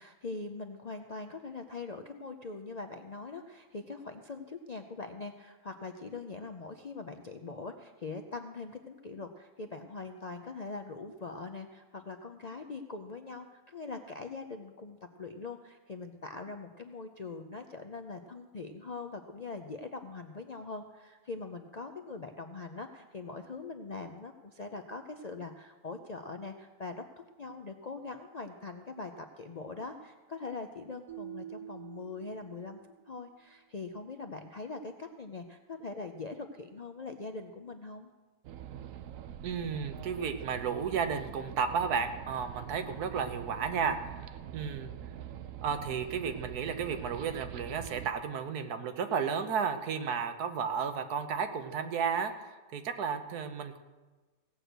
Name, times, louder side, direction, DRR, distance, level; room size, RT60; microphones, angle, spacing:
voice 1, 0.0-32.8 33.0-38.1, left 3 dB, 55° left, 5 dB, 0.4 m, -42 dB
sound 1, 31.1-33.2, right 11 dB, 30° right, 0.5 m, -47 dB
sound 2, 38.4-48.1, right 10 dB, 70° right, 1.0 m, -44 dB
voice 2, 39.4-44.9 45.6-53.8, right 6 dB, 85° right, 8 dB, 1.5 m, -33 dB
17.0 x 6.2 x 8.0 m, 1.2 s
omnidirectional pair, 1.6 m